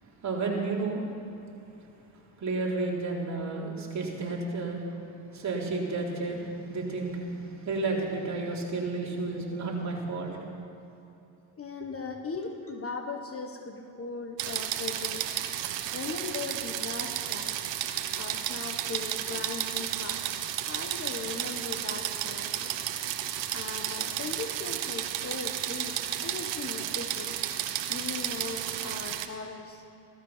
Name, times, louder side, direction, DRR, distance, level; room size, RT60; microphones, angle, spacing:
voice 1, 0.0-1.1 2.4-10.5, right 3 dB, 35° right, -3 dB, 3.8 m, -32 dB
voice 2, 11.6-15.3 15.6-17.5 18.1-20.2 20.6-22.7 23.5-27.3 27.9-29.8, left 4 dB, 30° left, 5 dB, 1.4 m, -38 dB
sound 1, 14.4-29.3, right 11 dB, 70° right, 1.2 m, -33 dB
16.5 x 13.5 x 5.8 m, 2.8 s
supercardioid pair, 90°, 45 cm